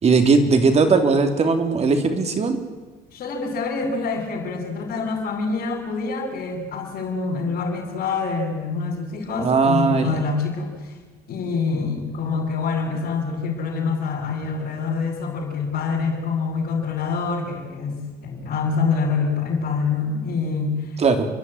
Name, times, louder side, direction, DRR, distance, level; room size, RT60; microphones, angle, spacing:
voice 1, 0.0-2.6 9.4-10.2 21.0-21.3, right 4 dB, 40° right, 6 dB, 3.1 m, -18 dB
voice 2, 3.1-11.0 11.3-21.0, left 4 dB, 60° left, -7 dB, 6.2 m, -26 dB
30.0 x 11.5 x 9.8 m, 1.3 s
cardioid pair, 110°, 17 cm